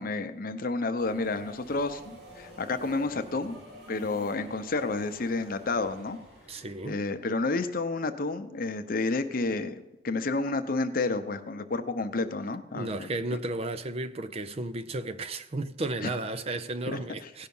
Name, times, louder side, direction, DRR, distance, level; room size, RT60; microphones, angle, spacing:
voice 1, 0.0-3.6 3.9-6.2 6.8-9.7 10.0-13.1 16.0-16.1 16.9-17.0, left 3 dB, 50° left, 0.7 m, -30 dB
Subway metro underground, 1.0-7.2, right 1 dB, 60° right, 3.1 m, -49 dB
voice 2, 6.5-7.0 12.7-17.5, right 2 dB, 35° right, 0.5 m, -33 dB
17.0 x 5.6 x 5.4 m
head